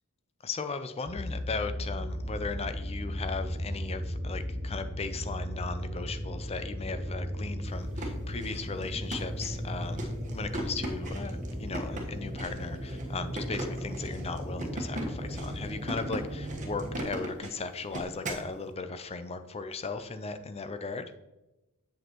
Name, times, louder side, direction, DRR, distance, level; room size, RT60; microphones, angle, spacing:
voice 1, 0.4-21.1, left 4 dB, 30° left, 9 dB, 0.5 m, -37 dB
sound 1, 1.1-17.1, equal, 20° right, 2.1 m, -36 dB
sound 2, 7.7-18.5, right 1 dB, 35° right, 1.3 m, -39 dB
8.0 x 7.6 x 3.0 m, 1.0 s
head